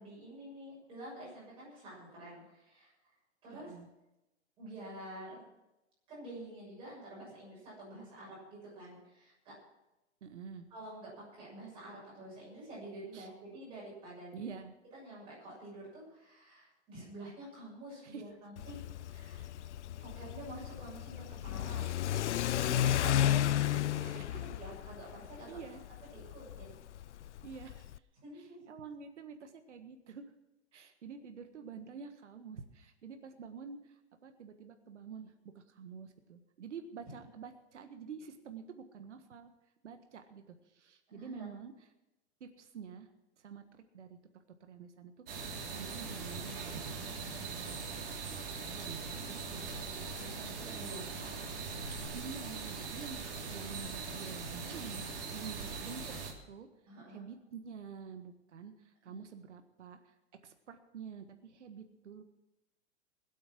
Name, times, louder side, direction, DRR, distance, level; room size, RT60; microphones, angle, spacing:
voice 1, 0.0-2.9 3.4-3.7 4.6-5.4 6.1-9.6 10.7-14.5 14.9-18.8 19.1-19.5 20.0-22.0 22.3-25.6 26.1-26.8 28.2-28.7 31.0-31.2 41.1-41.5 49.6-51.5 56.9-57.3 59.0-59.2, right 1 dB, 15° right, -6 dB, 6.8 m, -48 dB
voice 2, 3.5-3.9 10.2-10.7 13.1-13.3 14.3-14.7 18.0-18.3 22.6-23.0 24.0-24.3 25.5-25.8 27.4-27.9 28.3-30.3 30.7-39.5 39.8-41.9 42.4-43.1 43.4-47.8 48.3-49.7 52.1-56.0 56.5-56.7 57.1-60.2 60.4-62.2, right 6 dB, 85° right, 7 dB, 1.7 m, -48 dB
Car / Accelerating revving vroom, 18.6-28.0, left 12 dB, 80° left, 0.6 m, -33 dB
sound 1, 45.3-56.3, right 4 dB, 50° right, 3.2 m, -41 dB
20.0 x 8.6 x 6.1 m, 0.97 s
hypercardioid pair, 175°, 34 cm